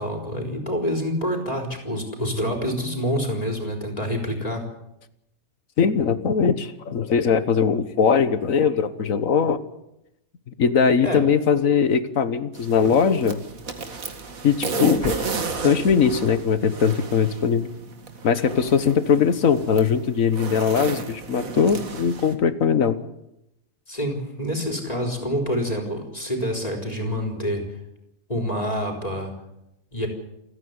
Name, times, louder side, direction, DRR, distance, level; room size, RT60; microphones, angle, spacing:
voice 1, 0.0-4.7 11.0-11.3 23.9-27.6 28.3-29.3 29.9-30.1, equal, 25° left, 2 dB, 4.2 m, -27 dB
voice 2, 5.8-9.6 10.6-13.4 14.4-15.2 15.6-17.7 18.2-23.0, left 6 dB, 65° left, 13 dB, 1.6 m, -20 dB
sound 1, 12.5-22.3, right 4 dB, 70° right, 2.3 m, -33 dB
29.0 x 9.9 x 9.6 m, 0.87 s
omnidirectional pair, 1.5 m